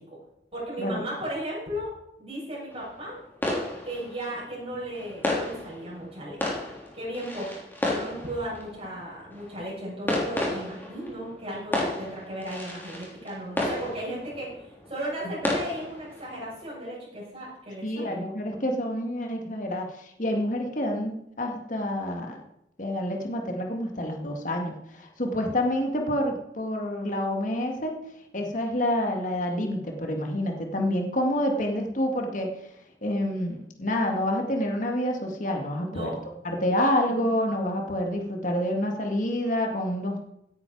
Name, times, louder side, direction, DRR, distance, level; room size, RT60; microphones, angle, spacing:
voice 1, 0.5-1.9 2.2-3.2 3.8-6.6 6.9-7.6 7.9-18.2 35.8-36.1 36.7-37.0, right 1 dB, 35° right, -7 dB, 6.8 m, -35 dB
sound 1, 2.7-16.8, left 1 dB, 10° left, 3.5 m, -33 dB
voice 2, 17.8-22.4 22.8-27.9 28.3-32.5 33.0-36.1 36.4-40.2, left 1 dB, 45° left, 2 dB, 2.0 m, -28 dB
16.5 x 9.8 x 4.7 m, 0.80 s
head